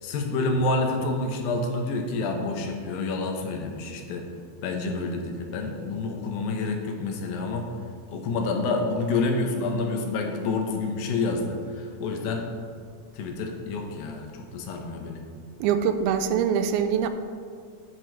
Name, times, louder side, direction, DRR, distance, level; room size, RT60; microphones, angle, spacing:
voice 1, 0.0-4.3 4.6-7.7 8.1-12.5 13.1-15.2, left 3 dB, 75° left, 3 dB, 2.5 m, -28 dB
voice 2, 15.6-17.1, right 8 dB, 85° right, 10 dB, 2.4 m, -23 dB
9.9 x 7.5 x 4.5 m, 2.1 s
omnidirectional pair, 4.4 m